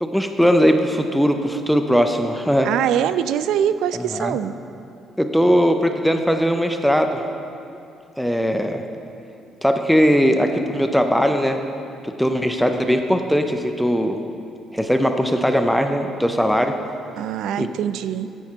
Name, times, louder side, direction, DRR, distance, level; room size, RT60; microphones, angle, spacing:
voice 1, 0.0-2.7 3.9-4.4 5.2-7.2 8.2-8.9 9.6-11.6 12.0-14.2 14.7-16.8 17.6-17.7, equal, ahead, 5 dB, 0.4 m, -19 dB
voice 2, 2.6-4.5 17.2-18.3, right 9 dB, 80° right, 13 dB, 0.3 m, -23 dB
11.0 x 8.2 x 4.5 m, 2.6 s
cardioid pair, 160°, 0 cm